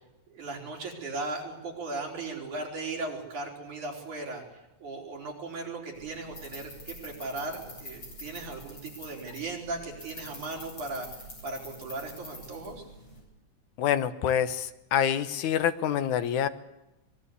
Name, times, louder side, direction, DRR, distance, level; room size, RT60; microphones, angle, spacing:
voice 1, 0.3-4.4 4.8-11.1 11.4-12.8, right 3 dB, 80° right, 0 dB, 5.9 m, -37 dB
sound 1, 5.9-13.2, left 1 dB, 45° left, 9.0 m, -46 dB
voice 2, 13.8-16.5, left 9 dB, 80° left, 11 dB, 2.6 m, -26 dB
24.5 x 21.0 x 8.3 m, 0.95 s
omnidirectional pair, 3.4 m